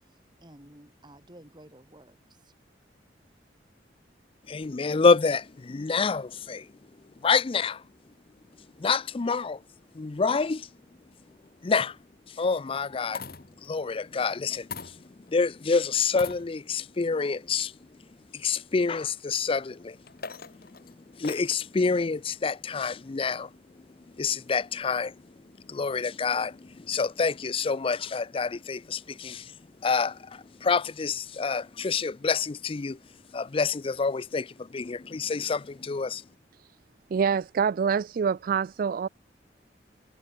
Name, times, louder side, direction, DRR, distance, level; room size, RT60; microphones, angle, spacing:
voice 1, 0.1-2.5, right 1 dB, 25° right, 3.5 m, -53 dB
voice 2, 4.5-6.6 7.2-7.8 8.8-9.6 10.0-10.7 11.6-11.9 12.4-13.2 13.7-14.7 15.3-17.7 18.4-20.0 21.2-23.5 24.2-25.1 25.7-26.6 26.9-29.4 29.8-33.0 33.3-34.5 34.7-36.2, left 4 dB, 30° left, 0.4 m, -27 dB
sound 1, 11.5-11.8 12.8-13.7 14.7-15.4 16.1-16.9 17.6-17.7 19.8-21.7 22.9-23.3, left 5 dB, 55° left, 2.5 m, -42 dB
voice 3, 37.1-39.1, right 6 dB, 50° right, 0.3 m, -26 dB
head